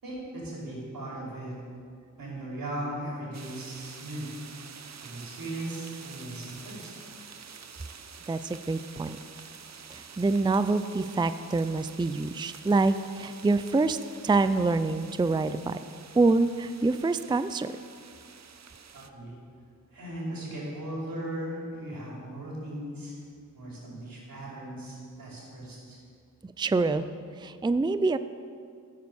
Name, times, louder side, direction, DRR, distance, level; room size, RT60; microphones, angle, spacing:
voice 1, 0.0-1.5 2.2-4.3 5.0-6.9 18.9-19.3 19.9-23.1 23.5-26.0, right 1 dB, 90° right, -5 dB, 5.0 m, -37 dB
sound 1, 3.3-19.1, right 6 dB, 55° right, 0.8 m, -48 dB
voice 2, 8.3-9.2 9.9-14.0 14.2-15.8 16.1-17.7 26.4-27.1 27.4-28.2, right 3 dB, 15° right, 12 dB, 0.4 m, -26 dB
16.0 x 9.6 x 7.1 m, 2.2 s
wide cardioid pair, 110°, 33 cm